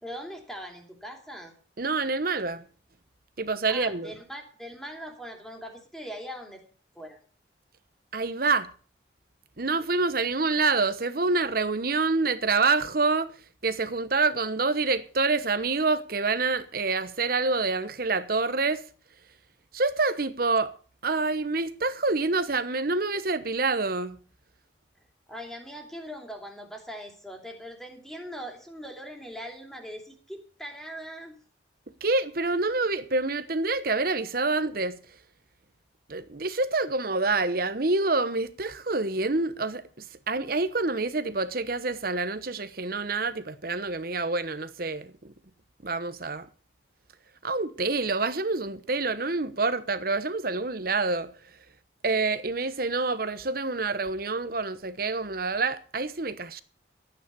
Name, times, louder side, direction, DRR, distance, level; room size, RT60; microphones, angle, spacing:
voice 1, 0.0-1.5 3.7-6.6 6.9-7.2 25.3-31.4, equal, ahead, 2.8 m, -41 dB
voice 2, 1.8-2.6 3.4-4.1 8.1-8.7 9.6-13.3 13.6-18.8 19.7-20.7 21.0-24.2 32.0-35.0 36.1-45.3 45.8-46.5 47.4-51.3 52.0-56.6, right 3 dB, 50° right, 1.0 m, -27 dB
13.5 x 9.2 x 6.9 m
head